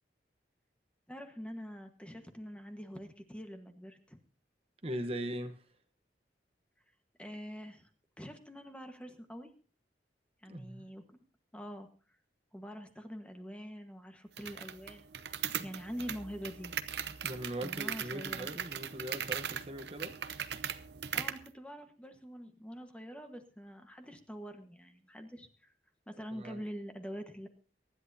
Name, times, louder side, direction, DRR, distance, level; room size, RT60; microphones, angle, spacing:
voice 1, 1.1-4.2 7.2-7.9 8.2-9.5 10.4-11.0 11.5-11.9 12.5-15.3 15.6-16.7 17.6-18.5 21.1-25.7 26.1-27.5, equal, 5° left, 1.3 m, -45 dB
voice 2, 4.8-5.7 10.4-10.9 15.5-15.7 17.2-20.2 26.3-26.6, right 1 dB, 35° right, 1.0 m, -40 dB
sound 1, 14.4-21.5, right 8 dB, 70° right, 0.7 m, -39 dB
24.0 x 11.0 x 2.8 m
head